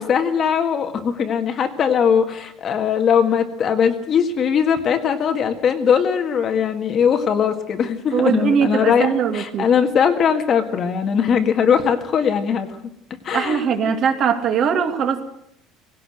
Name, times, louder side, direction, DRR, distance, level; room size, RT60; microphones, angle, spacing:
voice 1, 0.0-12.7 13.2-13.7, left 7 dB, 30° left, 6 dB, 1.8 m, -20 dB
voice 2, 8.1-9.7 13.3-15.2, right 7 dB, 35° right, 5 dB, 2.4 m, -20 dB
19.5 x 17.0 x 7.8 m, 0.74 s
cardioid pair, 180°, 0 cm